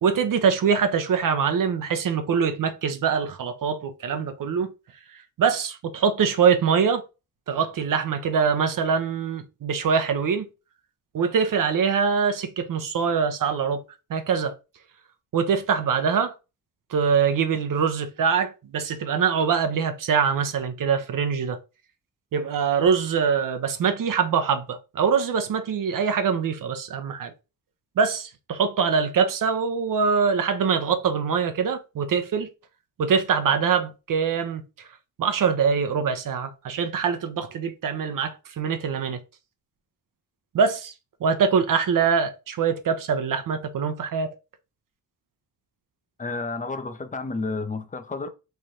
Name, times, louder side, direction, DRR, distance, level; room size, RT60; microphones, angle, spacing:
voice 1, 0.0-4.7 5.4-7.0 7.5-10.5 11.1-13.8 14.1-14.5 15.3-16.3 16.9-21.6 22.3-27.3 28.0-32.5 33.0-34.6 35.2-39.2 40.5-40.9 41.2-44.3, right 6 dB, 60° right, 0.7 m, -23 dB
voice 2, 46.2-48.3, left 3 dB, 20° left, 0.7 m, -31 dB
3.3 x 2.6 x 4.2 m
cardioid pair, 65°, 37 cm